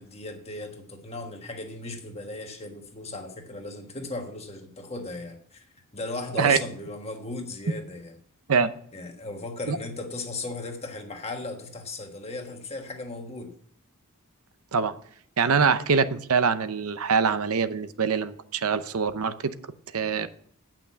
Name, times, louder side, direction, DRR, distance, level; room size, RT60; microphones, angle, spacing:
voice 1, 0.0-5.7 5.9-8.1 8.9-13.5 20.1-20.3, left 2 dB, 30° left, 4 dB, 1.4 m, -37 dB
voice 2, 15.4-19.3 19.9-20.3, right 5 dB, 90° right, 12 dB, 0.7 m, -24 dB
8.9 x 6.0 x 8.4 m, 0.63 s
head